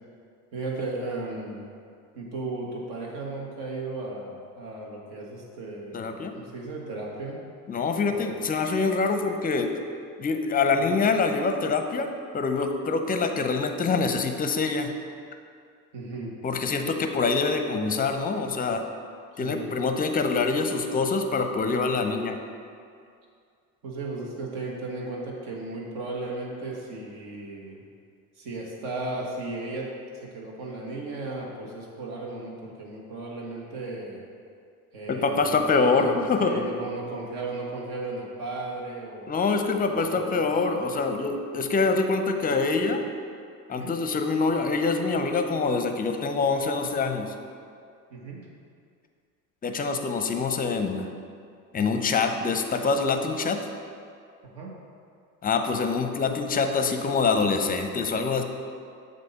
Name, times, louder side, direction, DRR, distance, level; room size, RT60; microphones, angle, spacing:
voice 1, 0.5-1.7 2.1-7.4 8.1-8.3 15.9-16.3 19.4-19.8 23.8-27.8 28.3-29.9 30.2-34.2 34.9-39.4 39.9-40.7 43.7-43.9 48.1-48.4 54.5-54.7, right 2 dB, 65° right, -3 dB, 1.5 m, -35 dB
voice 2, 5.9-6.3 7.7-9.7 10.2-14.9 16.4-18.8 19.4-22.4 35.1-36.7 39.3-43.0 43.7-47.3 49.6-51.1 51.7-53.7 55.4-58.4, left 4 dB, 20° left, 6 dB, 0.6 m, -25 dB
7.7 x 2.7 x 5.5 m, 2.3 s
hypercardioid pair, 70°, 42 cm